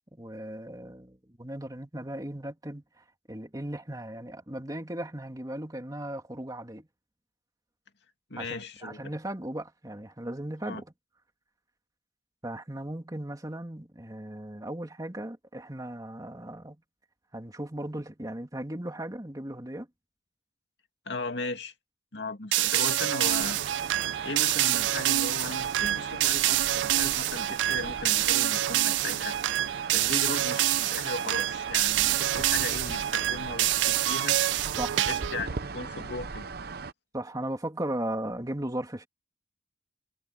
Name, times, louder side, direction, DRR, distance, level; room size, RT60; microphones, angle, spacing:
voice 1, 0.2-6.9 8.4-8.6 8.8-10.9 12.4-16.8 17.3-19.9 34.8-35.1 37.1-39.1, right 1 dB, 20° right, 2.6 m, -37 dB
voice 2, 8.3-9.1 10.6-10.8 21.1-21.7 22.1-23.6 24.2-29.4 29.9-34.4 34.9-36.5, left 3 dB, 70° left, 2.6 m, -37 dB
sound 1, 22.5-35.4, right 14 dB, 90° right, 0.3 m, -27 dB
sound 2, 23.2-36.9, right 4 dB, 60° right, 0.8 m, -39 dB
head